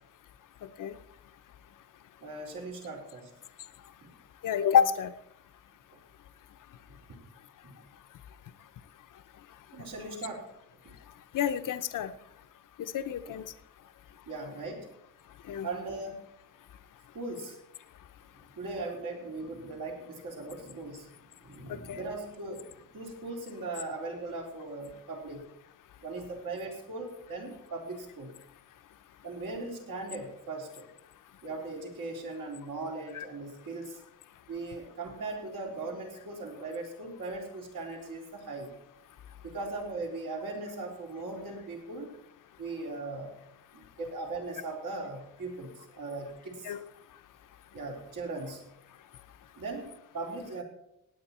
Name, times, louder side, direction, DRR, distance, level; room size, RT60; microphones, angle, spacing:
voice 1, 0.6-1.0 4.4-5.1 11.3-12.1 12.8-13.4 15.5-15.7 21.7-22.0 33.1-33.2 46.6-46.8, left 8 dB, 70° left, 10 dB, 0.8 m, -28 dB
voice 2, 2.2-3.3 4.0-4.1 6.9-7.3 7.6-7.8 9.7-10.5 10.8-10.9 14.3-14.9 15.6-16.2 17.1-17.6 18.5-21.1 21.4-25.5 26.0-28.3 29.2-30.9 31.4-34.0 34.5-38.7 39.4-42.1 42.6-43.4 43.7-46.7 47.7-48.7 49.6-50.6, right 3 dB, 75° right, 0 dB, 3.9 m, -39 dB
17.5 x 9.3 x 4.3 m, 0.79 s
wide cardioid pair, 150°, 33 cm